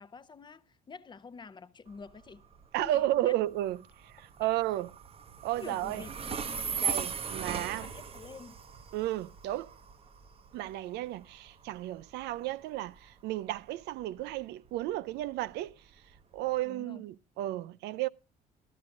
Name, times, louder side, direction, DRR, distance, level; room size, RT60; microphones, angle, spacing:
voice 1, 0.0-2.5 2.8-3.4 5.6-6.9 7.3-8.6 16.6-17.0, left 5 dB, 25° left, 0.7 m, -48 dB
Train, 1.9-16.6, right 6 dB, 35° right, 0.7 m, -40 dB
voice 2, 2.7-4.9 5.4-6.0 6.8-7.9 8.9-9.7 10.5-15.8 16.3-18.1, right 15 dB, 85° right, 0.5 m, -33 dB
13.0 x 12.5 x 2.5 m
cardioid pair, 110°, 17 cm